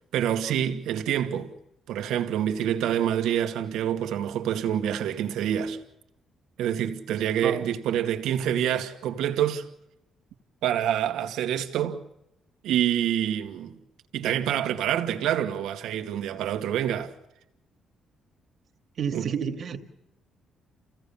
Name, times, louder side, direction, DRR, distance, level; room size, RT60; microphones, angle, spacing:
voice 1, 0.1-1.5 1.9-5.8 6.6-9.7 10.6-12.0 12.6-13.8 14.1-17.1 19.1-19.3, right 10 dB, 85° right, 2.1 m, -27 dB
voice 2, 19.0-19.8, right 7 dB, 55° right, 2.3 m, -30 dB
29.0 x 17.0 x 7.2 m
cardioid pair, 90°, 0 cm